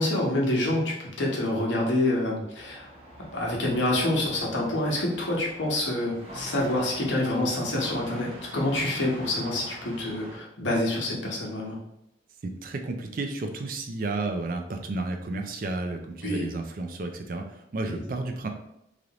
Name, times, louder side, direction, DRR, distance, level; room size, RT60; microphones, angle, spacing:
voice 1, 0.0-2.9 3.3-11.8 16.2-16.5, left 1 dB, 85° left, -3 dB, 0.9 m, -27 dB
sound 1, 2.5-10.4, right 1 dB, 35° right, 1.3 m, -44 dB
voice 2, 12.4-18.5, right 2 dB, 50° right, 5 dB, 0.4 m, -32 dB
3.3 x 2.5 x 2.9 m, 0.81 s
head